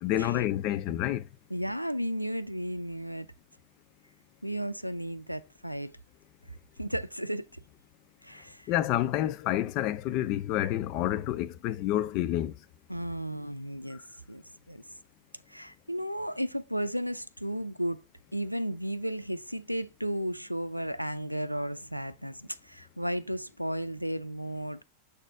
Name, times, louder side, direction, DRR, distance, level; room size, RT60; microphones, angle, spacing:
voice 1, 0.0-1.2 8.7-12.5, left 13 dB, 40° left, 0.5 m, -28 dB
voice 2, 1.5-3.3 4.4-5.9 6.5-7.6 8.2-8.7 12.9-14.8 15.5-18.0 18.3-24.8, equal, 90° right, 0.4 m, -34 dB
7.0 x 4.0 x 3.5 m
figure-of-eight pair, 90°, 0 cm